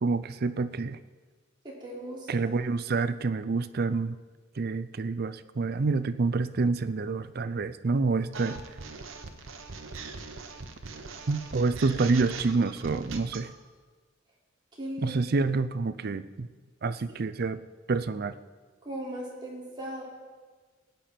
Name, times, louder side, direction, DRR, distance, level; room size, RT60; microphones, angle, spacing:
voice 1, 0.0-1.0 2.3-4.2 4.6-8.6 11.3-13.5 15.0-16.5 16.8-17.6 17.9-18.3, right 3 dB, 50° right, 13 dB, 0.5 m, -27 dB
voice 2, 1.6-2.3 14.8-15.2 18.8-20.0, right 1 dB, 25° right, -5 dB, 3.5 m, -37 dB
sound 1, 8.3-13.5, right 4 dB, 85° right, 1.1 m, -41 dB
18.5 x 9.1 x 4.4 m, 1.4 s
head